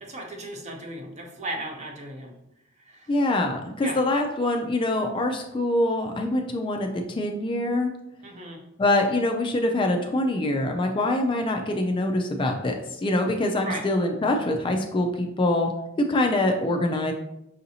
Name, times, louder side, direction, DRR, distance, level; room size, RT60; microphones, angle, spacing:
voice 1, 0.0-2.3 2.8-3.1 3.8-4.0 8.2-8.6 13.6-13.8, right 1 dB, 35° right, 2 dB, 0.6 m, -36 dB
voice 2, 3.1-7.9 8.8-15.7 16.0-17.1, left 1 dB, 25° left, 4 dB, 0.3 m, -24 dB
5.6 x 2.6 x 2.7 m, 0.85 s
head